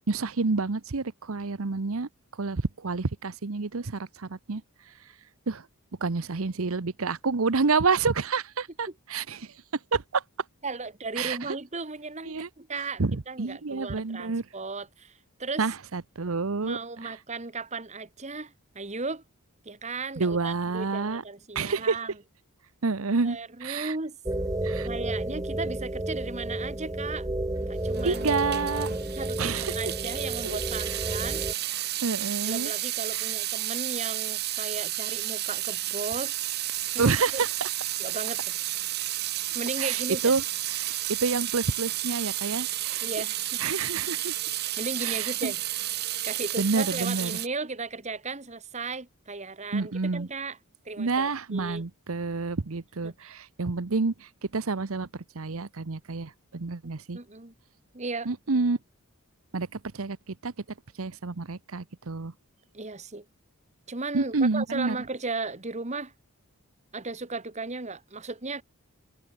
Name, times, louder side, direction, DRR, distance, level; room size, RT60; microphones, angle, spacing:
voice 1, 0.1-2.1 2.4-4.6 5.5-5.6 6.0-9.5 9.9-10.2 11.2-11.6 12.2-14.4 15.6-17.2 20.2-21.2 21.5-22.0 22.8-23.9 24.6-24.9 28.0-28.9 29.4-29.9 30.4-30.6 30.9-31.0 31.7-32.7 33.1-33.3 37.0-37.7 39.8-43.0 43.6-44.3 45.0-45.5 46.6-47.4 49.7-50.3 51.0-57.2 58.2-58.8 59.5-60.5 61.0-62.3 64.1-65.0, right 4 dB, 70° right, 0.9 m, -29 dB
voice 2, 10.6-15.1 15.4-15.6 16.6-19.2 19.6-22.1 23.2-24.2 24.8-27.3 27.6-28.4 29.2-31.4 32.4-36.5 36.9-37.1 38.0-38.6 39.5-40.3 43.0-43.6 44.8-45.6 46.2-50.6 50.8-51.8 53.0-53.3 57.1-57.5 57.9-58.3 62.7-63.2 63.9-66.1 66.9-68.6, right 3 dB, 30° right, 1.6 m, -36 dB
sound 1, 24.3-31.5, right 1 dB, 15° right, 0.8 m, -31 dB
Water tap faucet / Sink (filling or washing) / Drip, 27.9-47.5, right 15 dB, 45° right, 1.0 m, -32 dB
head